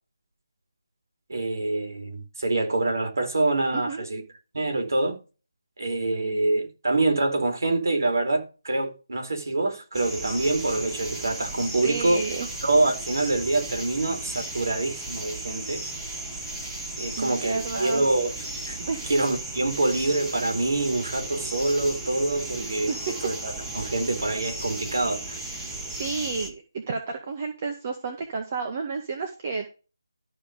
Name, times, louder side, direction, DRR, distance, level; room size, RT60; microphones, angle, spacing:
voice 1, 1.3-4.2 4.5-5.2 5.8-12.2 12.6-15.8 17.0-18.3 18.7-25.4, right 2 dB, 55° right, 4.2 m, -26 dB
voice 2, 3.7-4.0 11.8-12.5 17.2-18.1 18.9-19.1 22.9-23.1 26.0-29.7, right 4 dB, 30° right, 2.0 m, -31 dB
sound 1, 9.9-26.5, right 2 dB, 5° right, 1.9 m, -35 dB
13.5 x 5.4 x 5.2 m
figure-of-eight pair, 155°, 2 cm